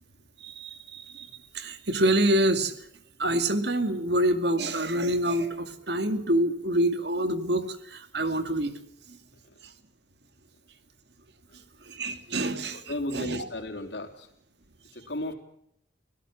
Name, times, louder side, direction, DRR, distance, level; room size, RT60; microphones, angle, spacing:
voice 1, 0.4-2.7 3.2-8.7 9.1-9.2 11.9-12.8 13.1-13.5, right 1 dB, 65° right, 9 dB, 2.2 m, -26 dB
voice 2, 12.7-14.3 14.9-15.3, left 1 dB, 70° left, 5 dB, 3.7 m, -34 dB
25.0 x 17.0 x 7.2 m, 0.73 s
head